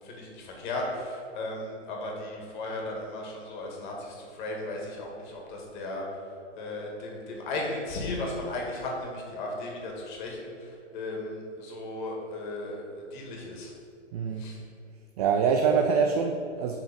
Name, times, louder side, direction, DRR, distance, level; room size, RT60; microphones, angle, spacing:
voice 1, 0.0-13.7 14.3-14.6, left 2 dB, 40° left, -1 dB, 2.1 m, -36 dB
voice 2, 14.1-14.4 15.2-16.8, right 6 dB, 35° right, 4 dB, 0.5 m, -24 dB
7.2 x 5.8 x 5.3 m, 2.6 s
hypercardioid pair, 140°, 36 cm